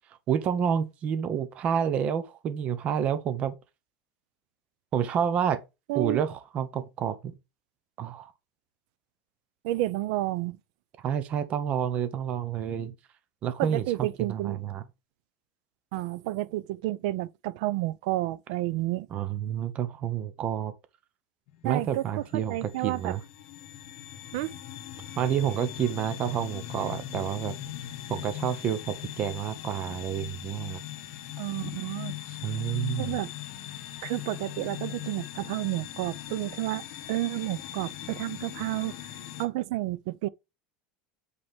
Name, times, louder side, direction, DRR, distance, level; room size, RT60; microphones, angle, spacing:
voice 1, 0.3-3.5 4.9-5.6 5.9-7.3 8.0-8.3 11.0-12.9 13.4-14.8 19.1-20.7 21.6-23.2 25.2-27.5 28.1-30.8 32.3-33.2, right 8 dB, 30° right, 0.9 m, -29 dB
voice 2, 5.9-6.2 9.6-10.6 13.6-14.6 15.9-19.1 21.6-23.1 24.3-24.5 31.4-32.2 33.0-33.3 34.0-36.8 37.1-38.9 39.4-40.3, right 16 dB, 65° right, 0.5 m, -30 dB
sound 1, 21.5-39.5, left 13 dB, 55° left, 1.6 m, -40 dB
7.9 x 4.1 x 3.6 m
supercardioid pair, 165°, 4 cm